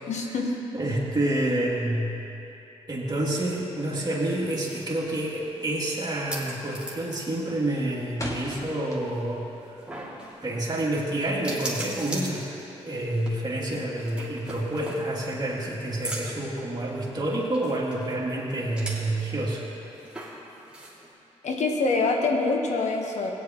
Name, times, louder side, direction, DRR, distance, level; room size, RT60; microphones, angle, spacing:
voice 1, 0.1-0.5 21.4-23.3, left 3 dB, 70° left, 1 dB, 1.2 m, -25 dB
voice 2, 0.7-2.2 2.9-9.8 10.4-19.6, right 1 dB, 35° right, -5 dB, 2.8 m, -28 dB
sound 1, 4.1-21.1, right 1 dB, 10° right, 2.6 m, -42 dB
sound 2, 8.2-9.4 9.8-11.2, left 1 dB, 25° left, 1.9 m, -39 dB
16.5 x 9.7 x 3.1 m, 3.0 s
cardioid pair, 60°, 12 cm